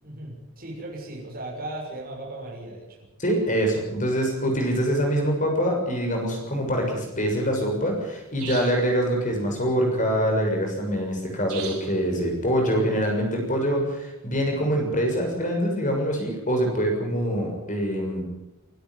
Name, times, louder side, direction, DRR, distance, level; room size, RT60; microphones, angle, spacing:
voice 1, 0.0-3.0, right 1 dB, 40° right, -3 dB, 6.7 m, -37 dB
voice 2, 3.2-18.2, equal, 35° left, 2 dB, 6.8 m, -24 dB
sound 1, 8.4-8.9 11.5-12.0, right 8 dB, 85° right, 4.9 m, -37 dB
25.0 x 12.5 x 9.8 m, 0.98 s
head